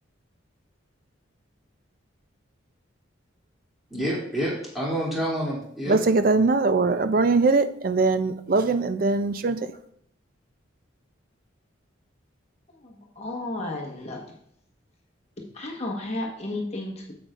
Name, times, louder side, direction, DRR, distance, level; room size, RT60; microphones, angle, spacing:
voice 1, 3.9-6.0, equal, ahead, -7 dB, 2.7 m, -28 dB
voice 2, 5.9-9.7, right 3 dB, 45° right, 11 dB, 0.4 m, -21 dB
voice 3, 12.7-14.3 15.4-17.1, left 2 dB, 35° left, -1 dB, 1.3 m, -33 dB
8.9 x 7.8 x 2.5 m, 0.70 s
head